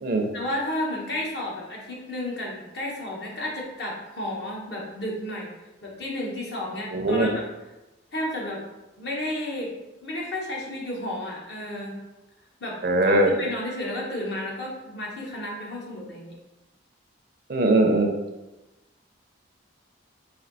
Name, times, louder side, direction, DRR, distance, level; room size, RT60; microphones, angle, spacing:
voice 1, 0.3-5.5 5.8-7.4 8.1-8.6 9.0-9.7 10.0-11.9 12.6-16.4, left 1 dB, 55° left, -3 dB, 1.1 m, -32 dB
voice 2, 6.9-7.3 12.8-13.3 17.5-18.1, right 2 dB, 50° right, 4 dB, 0.5 m, -20 dB
4.2 x 2.7 x 4.0 m, 1.0 s
head